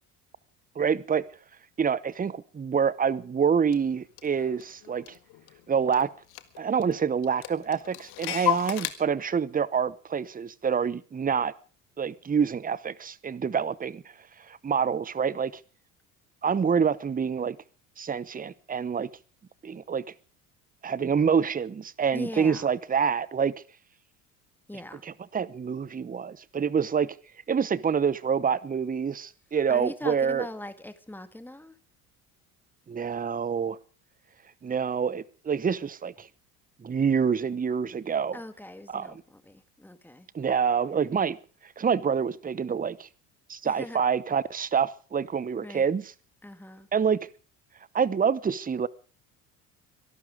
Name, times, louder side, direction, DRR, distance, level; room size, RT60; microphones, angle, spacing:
voice 1, 0.8-1.2 1.8-5.0 5.7-6.1 6.6-11.5 12.0-14.0 14.5-15.5 16.4-17.6 18.0-19.1 19.6-20.0 20.8-23.5 25.3-27.2 27.5-30.5 32.9-33.8 34.6-36.3 36.8-38.4 38.9-39.1 40.3-41.4 41.8-43.1 43.5-46.0 46.9-47.2 47.9-48.9, right 6 dB, 20° right, 20 dB, 0.9 m, -26 dB
Clock, 3.7-3.8 4.2-5.6 5.9-6.0 6.3-6.9 7.2-8.9, left 14 dB, 55° left, 1.8 m, -32 dB
voice 2, 22.1-22.7 24.7-25.0 29.7-31.8 38.3-40.3 43.6-44.0 45.6-45.9 46.4-46.9, left 1 dB, 5° left, 11 dB, 2.0 m, -41 dB
23.0 x 12.0 x 5.1 m, 0.41 s
hypercardioid pair, 65°, 45 cm